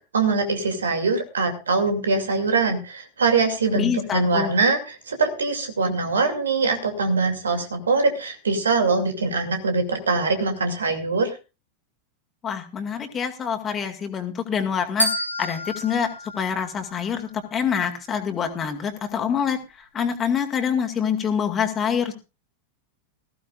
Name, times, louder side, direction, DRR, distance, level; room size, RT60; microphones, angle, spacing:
voice 1, 0.1-11.3, right 4 dB, 70° right, 6 dB, 2.5 m, -23 dB
voice 2, 3.8-4.6 12.4-15.1 15.4-19.6 19.9-22.1, left 7 dB, 25° left, 5 dB, 2.1 m, -26 dB
sound 1, 15.0-17.2, equal, 90° right, 3.9 m, -29 dB
19.0 x 15.0 x 2.5 m, 0.31 s
figure-of-eight pair, 90°, 0 cm